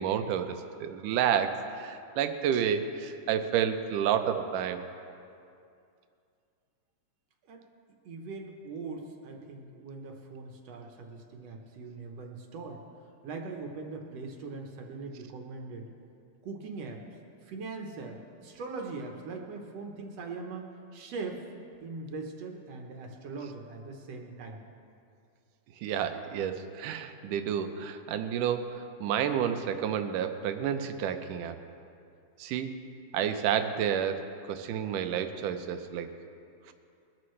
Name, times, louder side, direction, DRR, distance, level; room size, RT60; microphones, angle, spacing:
voice 1, 0.0-4.8 25.8-31.6 32.4-32.7 33.1-36.1 36.7-36.8, right 8 dB, 90° right, 8 dB, 2.3 m, -30 dB
voice 2, 8.0-12.8 13.2-15.9 16.4-17.0 17.4-21.4 21.8-24.6, right 3 dB, 65° right, 2 dB, 2.0 m, -41 dB
22.0 x 12.5 x 3.2 m, 2.5 s
omnidirectional pair, 3.6 m